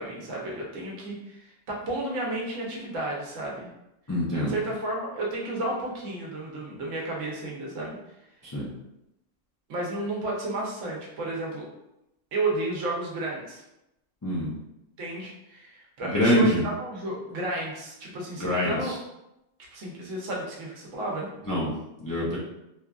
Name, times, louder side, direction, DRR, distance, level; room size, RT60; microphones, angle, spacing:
voice 1, 0.0-3.7 4.5-8.0 9.7-11.6 12.3-13.6 15.0-18.9 19.7-21.3, right 2 dB, 75° right, -3 dB, 1.1 m, -32 dB
voice 2, 4.1-4.6 8.4-8.7 14.2-14.5 16.0-16.6 18.4-19.0 21.5-21.7 22.0-22.4, equal, 35° left, -7 dB, 0.3 m, -25 dB
3.2 x 2.4 x 2.3 m, 0.88 s
omnidirectional pair, 1.3 m